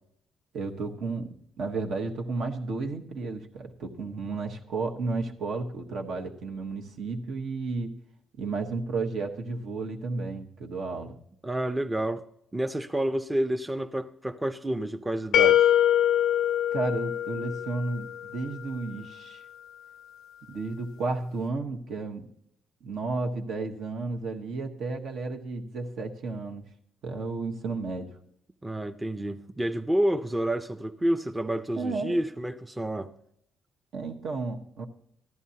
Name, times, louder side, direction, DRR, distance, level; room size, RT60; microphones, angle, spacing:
voice 1, 0.5-7.9 8.4-11.2 16.7-19.4 20.5-22.3 22.8-26.6 27.0-28.1 31.8-32.2 33.9-34.8, right 3 dB, 75° right, 1.1 m, -32 dB
voice 2, 11.4-12.2 12.5-15.7 28.6-33.1, right 1 dB, 10° right, 0.5 m, -29 dB
sound 1, 15.3-18.2, left 11 dB, 80° left, 0.4 m, -23 dB
14.5 x 10.5 x 2.8 m
cardioid pair, 90°, 0 cm